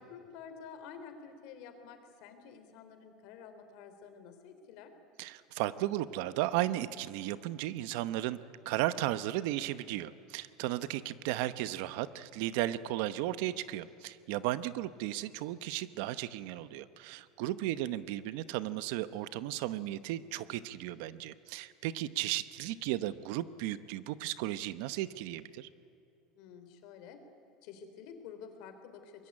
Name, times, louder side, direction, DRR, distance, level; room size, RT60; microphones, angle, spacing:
voice 1, 0.0-4.9 26.4-27.2 27.6-29.3, left 7 dB, 55° left, 8 dB, 3.5 m, -50 dB
voice 2, 5.2-8.4 8.6-25.7, right 14 dB, 65° right, 15 dB, 0.9 m, -35 dB
24.5 x 21.5 x 9.8 m, 2.7 s
cardioid pair, 165°, 0 cm